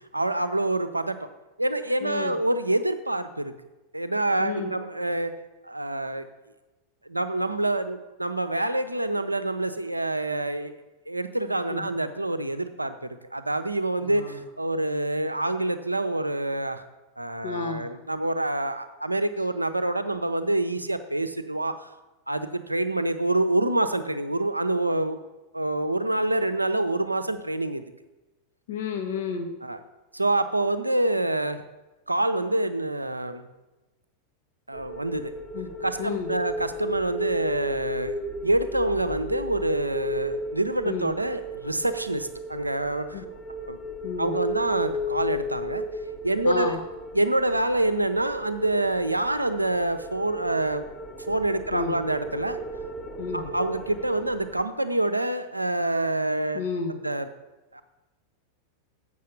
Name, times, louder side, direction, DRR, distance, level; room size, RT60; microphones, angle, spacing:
voice 1, 0.1-1.2 1.6-3.5 3.9-5.3 5.6-6.3 7.1-10.7 11.1-16.8 17.2-21.8 22.3-25.2 25.5-27.8 29.6-29.8 30.1-31.6 32.1-33.5 34.7-35.3 35.8-43.2 43.7-43.8 44.2-45.8 46.2-46.7 47.1-50.8 51.3-52.6 53.3-56.6 57.0-57.3 57.7-57.8, right 1 dB, 85° right, 10 dB, 0.6 m, -26 dB
voice 2, 2.0-2.3 4.4-4.7 11.7-11.9 14.0-14.4 17.4-17.9 28.7-29.6 35.5-35.7 36.0-36.3 40.8-41.1 43.1-43.3 44.0-44.4 46.4-46.8 51.7-52.0 53.2-53.5 56.5-57.0, left 5 dB, 60° left, 5 dB, 1.0 m, -31 dB
sound 1, 34.7-54.6, equal, 10° left, 1.0 m, -35 dB
7.5 x 6.1 x 7.2 m, 1.1 s
figure-of-eight pair, 90°, 0 cm